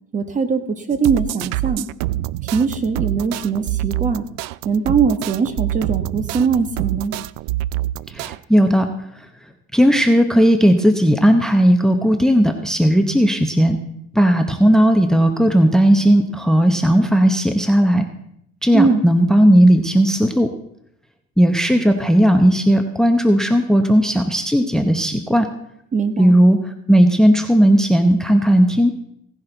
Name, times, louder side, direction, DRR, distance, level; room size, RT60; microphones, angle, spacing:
voice 1, 0.1-1.9 2.5-4.2 4.6-7.1 18.7-19.0 25.9-26.4, right 5 dB, 25° right, 9 dB, 1.1 m, -21 dB
sound 1, 0.9-8.4, right 15 dB, 75° right, 0.5 m, -26 dB
voice 2, 8.1-8.9 9.7-13.8 14.1-18.1 18.6-20.5 21.4-25.5 26.2-26.6 26.9-28.9, equal, ahead, 7 dB, 0.9 m, -15 dB
17.0 x 10.5 x 3.9 m, 0.74 s
cardioid pair, 125°, 29 cm